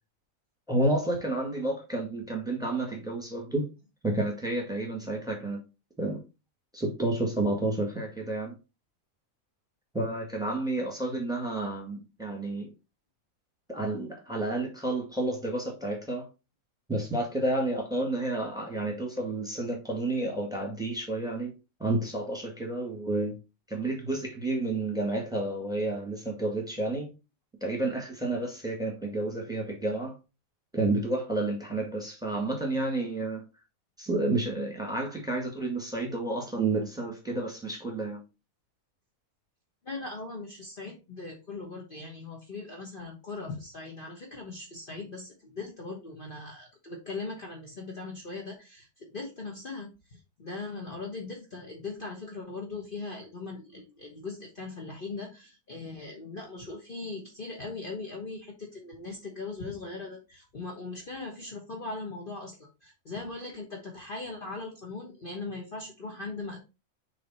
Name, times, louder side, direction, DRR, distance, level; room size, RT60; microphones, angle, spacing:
voice 1, 0.7-3.7 4.0-5.6 6.0-6.2 6.7-8.6 9.9-12.7 13.7-16.3 16.9-21.5 21.8-23.3 23.7-27.1 27.6-30.1 30.7-33.4 34.0-38.2, right 2 dB, 5° right, 1.9 m, -30 dB
voice 2, 39.8-66.6, left 3 dB, 40° left, 1.2 m, -39 dB
6.8 x 3.4 x 4.3 m
omnidirectional pair, 1.5 m